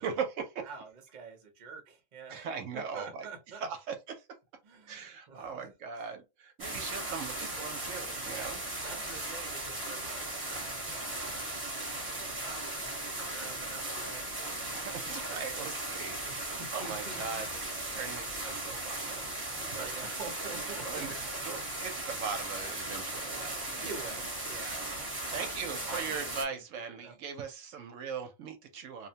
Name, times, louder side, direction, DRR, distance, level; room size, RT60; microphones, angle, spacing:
voice 1, 0.0-0.7 2.3-3.3 3.5-4.3 4.9-8.6 14.7-19.9 20.7-23.9 24.5-24.6 25.3-29.1, right 6 dB, 70° right, 0.9 m, -40 dB
voice 2, 0.6-2.5 2.7-3.7 4.6-5.7 5.9-6.0 6.9-7.2 8.8-14.6 16.2-17.5 19.7-21.4 23.8-24.8 25.7-27.2, right 4 dB, 45° right, 0.6 m, -47 dB
sound 1, 6.6-26.4, right 2 dB, 20° right, 0.9 m, -37 dB
2.8 x 2.1 x 2.7 m
omnidirectional pair, 1.4 m